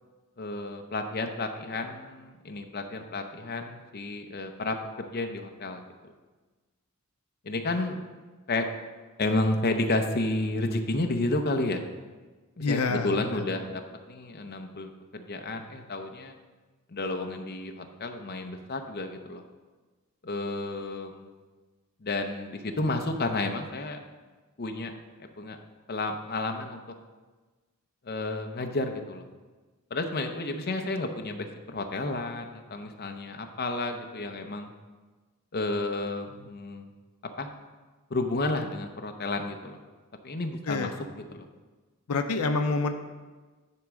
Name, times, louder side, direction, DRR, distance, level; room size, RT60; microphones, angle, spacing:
voice 1, 0.4-6.1 7.4-8.0 8.5-8.7 9.2-11.8 12.6-13.8 14.1-16.3 16.9-19.4 20.2-21.3 22.0-24.0 24.6-24.9 25.4-25.6 25.9-26.8 28.0-29.2 29.9-34.7 35.5-36.9 37.4-37.5 38.1-39.8 40.2-40.9 41.3-41.5, left 2 dB, 45° left, 4 dB, 0.6 m, -31 dB
voice 2, 12.6-13.4 40.7-40.9 42.1-42.9, left 3 dB, 80° left, 7 dB, 0.5 m, -27 dB
10.5 x 3.6 x 6.2 m, 1.3 s
head